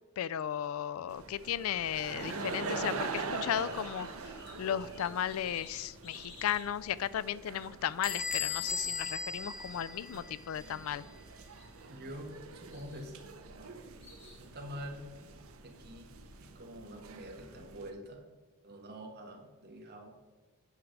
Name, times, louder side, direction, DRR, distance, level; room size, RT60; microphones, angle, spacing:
voice 1, 0.2-4.1 4.6-11.1, left 9 dB, 75° left, 18 dB, 0.3 m, -35 dB
sound 1, 1.1-17.9, right 4 dB, 80° right, 0.9 m, -44 dB
sound 2, 1.8-2.8 3.2-6.7 7.8-9.3 10.2-10.5 10.7-11.3 11.6-12.3 12.7-13.1 14.0-14.5, left 2 dB, 60° left, 3.1 m, -56 dB
Bell / Squeak, 8.0-10.5, left 5 dB, 40° left, 1.0 m, -37 dB
voice 2, 11.9-13.8 14.4-15.1 15.6-16.1 16.4-18.3 18.6-20.2, equal, 50° right, 3 dB, 1.4 m, -46 dB
9.1 x 4.8 x 6.4 m, 1.2 s
head